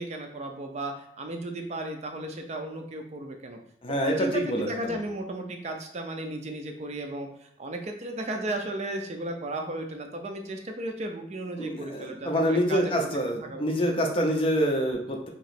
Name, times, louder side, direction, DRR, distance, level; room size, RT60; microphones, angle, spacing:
voice 1, 0.0-3.6 3.9-13.1 13.4-13.7, right 1 dB, 35° right, 4 dB, 0.4 m, -35 dB
voice 2, 3.8-5.0 11.6-15.3, equal, 30° left, 1 dB, 0.6 m, -26 dB
2.9 x 2.9 x 4.1 m, 0.71 s
head